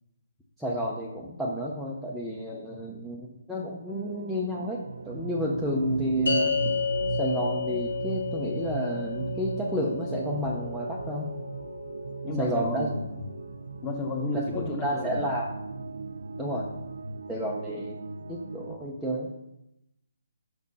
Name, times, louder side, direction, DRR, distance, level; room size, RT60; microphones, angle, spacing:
voice 1, 0.6-4.8 5.0-6.6 7.2-11.3 12.4-12.9 14.3-15.5 16.4-16.7 17.3-18.0 18.3-19.3, equal, ahead, -6 dB, 0.6 m, -31 dB
sound 1, 3.9-18.8, right 4 dB, 75° right, 0.6 m, -37 dB
sound 2, 6.3-12.8, left 5 dB, 75° left, 1.7 m, -32 dB
voice 2, 12.2-13.2 13.8-15.2, left 2 dB, 15° left, 1 dB, 1.3 m, -32 dB
6.5 x 6.0 x 5.4 m, 0.87 s
hypercardioid pair, 165°, 0 cm